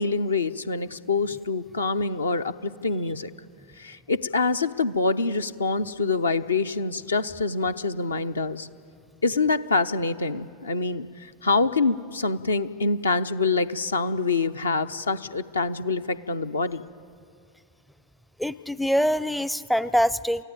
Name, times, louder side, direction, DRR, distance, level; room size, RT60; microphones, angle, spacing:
voice 1, 0.0-3.3 3.8-8.7 9.2-16.8, left 3 dB, 75° left, 9 dB, 0.7 m, -26 dB
voice 2, 18.4-20.4, equal, ahead, 17 dB, 0.4 m, -24 dB
28.0 x 15.5 x 8.9 m, 2.5 s
figure-of-eight pair, 90°, 0 cm